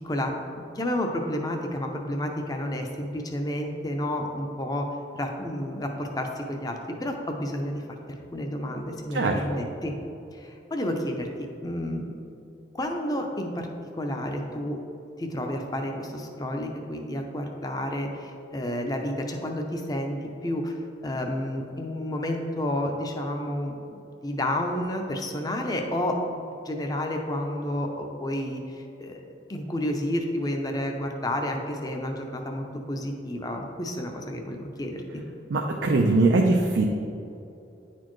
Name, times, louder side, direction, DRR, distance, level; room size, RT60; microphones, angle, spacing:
voice 1, 0.0-0.3 0.7-4.9 5.1-7.8 8.3-9.9 10.3-12.2 12.7-13.7 14.0-14.8 15.2-20.2 20.4-20.8 21.0-29.2 29.5-35.2, left 1 dB, 20° left, 3 dB, 0.5 m, -30 dB
voice 2, 35.5-36.8, right 3 dB, 85° right, 2 dB, 0.5 m, -21 dB
9.4 x 4.2 x 3.1 m, 2.8 s
head